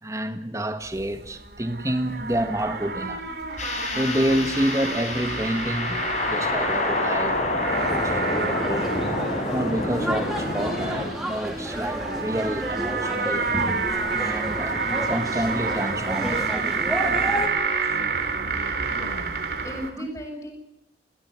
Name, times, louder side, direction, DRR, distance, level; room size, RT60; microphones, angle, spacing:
voice 1, 0.0-3.4 4.0-7.4 7.7-8.9 9.5-13.5 14.1-14.8 15.1-16.4 19.0-19.2 20.0-20.1, right 1 dB, 20° right, 1.8 m, -28 dB
sound 1, 0.9-19.9, right 4 dB, 65° right, 3.3 m, -29 dB
sound 2, 3.6-11.1, left 2 dB, 40° left, 6.1 m, -28 dB
sound 3, 7.8-17.5, equal, ahead, 4.5 m, -31 dB
voice 2, 18.9-19.3 19.6-20.5, equal, 20° left, 7.6 m, -36 dB
22.0 x 17.5 x 9.7 m
head